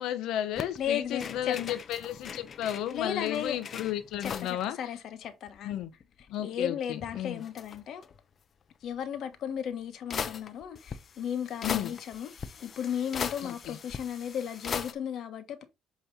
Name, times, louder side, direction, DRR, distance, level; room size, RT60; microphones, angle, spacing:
voice 1, 0.0-4.8 5.6-5.9 6.3-7.4 11.6-11.9 13.4-13.8, left 11 dB, 80° left, 1.0 m, -33 dB
sound 1, 0.6-4.6 4.9-5.0 5.2-6.3 6.9-8.2 9.3-9.4 10.1-14.9, left 6 dB, 45° left, 0.7 m, -40 dB
voice 2, 0.8-1.8 2.9-3.6 4.2-5.8 6.4-8.0 8.8-15.7, left 8 dB, 65° left, 1.2 m, -35 dB
8.2 x 3.3 x 4.1 m
cardioid pair, 105°, 0 cm